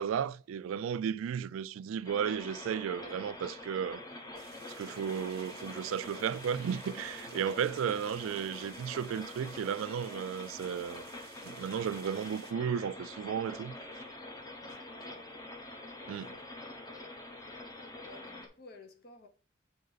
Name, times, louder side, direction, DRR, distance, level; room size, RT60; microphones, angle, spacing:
voice 1, 0.0-4.0 4.8-11.1 11.4-14.0 16.1-16.3, right 8 dB, 85° right, 0.3 m, -34 dB
sound 1, 2.0-18.5, left 2 dB, 20° left, 0.8 m, -45 dB
sound 2, 4.3-12.5, right 9 dB, 50° right, 0.6 m, -57 dB
voice 2, 14.6-15.3 16.1-16.5 18.0-19.3, left 2 dB, 50° left, 0.8 m, -54 dB
6.4 x 4.2 x 3.9 m
head